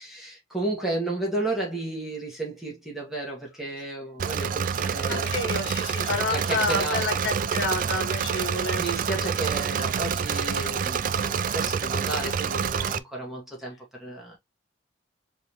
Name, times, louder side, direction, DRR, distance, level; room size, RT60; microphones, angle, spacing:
voice 1, 0.0-5.4 6.3-7.2 8.8-14.4, right 2 dB, ahead, 2.1 m, -32 dB
Engine / Mechanisms, 4.2-13.0, right 7 dB, 45° right, 0.3 m, -27 dB
voice 2, 5.1-8.8, left 2 dB, 60° left, 1.6 m, -29 dB
4.6 x 3.5 x 3.0 m
head